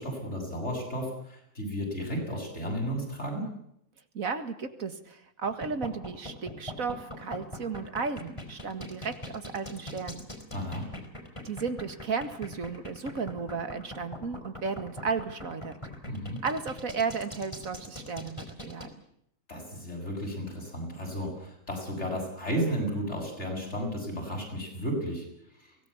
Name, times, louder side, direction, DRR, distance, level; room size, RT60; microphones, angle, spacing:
voice 1, 0.0-3.5 10.5-10.9 16.1-16.4 19.5-25.2, equal, 55° left, 1 dB, 8.0 m, -33 dB
voice 2, 4.1-10.3 11.4-15.8 16.4-18.9, right 5 dB, 85° right, 10 dB, 2.3 m, -34 dB
sound 1, 5.4-18.9, left 1 dB, 20° left, 4.6 m, -41 dB
23.5 x 18.5 x 8.6 m, 0.74 s
omnidirectional pair, 1.4 m